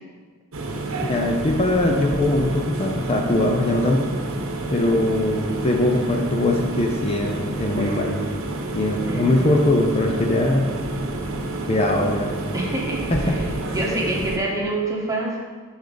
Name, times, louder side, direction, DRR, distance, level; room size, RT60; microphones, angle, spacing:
sound 1, 0.5-14.4, right 2 dB, 65° right, 0.9 m, -29 dB
voice 1, 1.1-4.1 4.7-8.2 8.7-10.7 11.7-12.4 13.1-13.4, left 1 dB, 30° left, 1 dB, 0.6 m, -21 dB
voice 2, 9.0-9.4 12.5-13.4 13.7-15.4, right 2 dB, 15° right, -3 dB, 1.3 m, -26 dB
8.8 x 6.3 x 3.9 m, 1.5 s
head